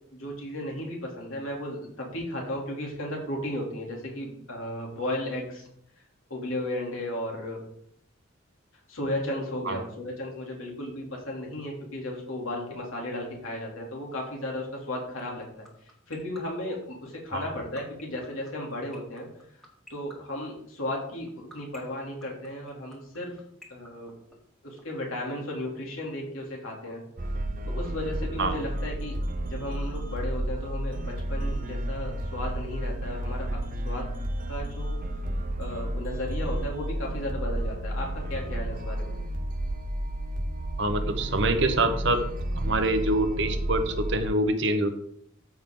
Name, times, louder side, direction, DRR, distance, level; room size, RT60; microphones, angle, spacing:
voice 1, 0.1-5.7 6.3-7.6 8.9-15.7 16.1-19.3 19.9-23.3 23.7-24.1 24.6-27.0 27.7-29.2 29.4-34.1 34.5-35.0 35.6-39.2, left 1 dB, 75° left, -2 dB, 3.1 m, -34 dB
sound 1, 15.2-24.8, equal, ahead, 1.6 m, -48 dB
sound 2, 27.2-44.3, right 1 dB, 40° right, 0.7 m, -31 dB
voice 2, 40.8-42.2 42.6-44.9, right 2 dB, 55° right, 7 dB, 1.1 m, -25 dB
14.0 x 5.5 x 3.9 m, 0.70 s
head